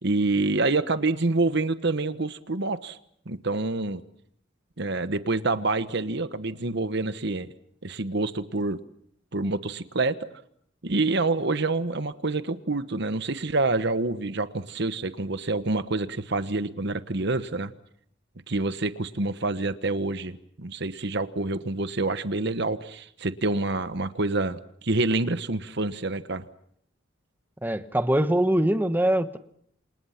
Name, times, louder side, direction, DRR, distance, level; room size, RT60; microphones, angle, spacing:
voice 1, 0.0-3.0 3.3-4.0 4.8-7.5 7.8-8.8 9.3-10.4 10.8-17.7 18.5-26.4, right 2 dB, 60° right, 12 dB, 1.2 m, -27 dB
voice 2, 27.6-29.4, right 1 dB, 10° right, 10 dB, 1.1 m, -23 dB
29.0 x 27.0 x 5.9 m, 0.67 s
head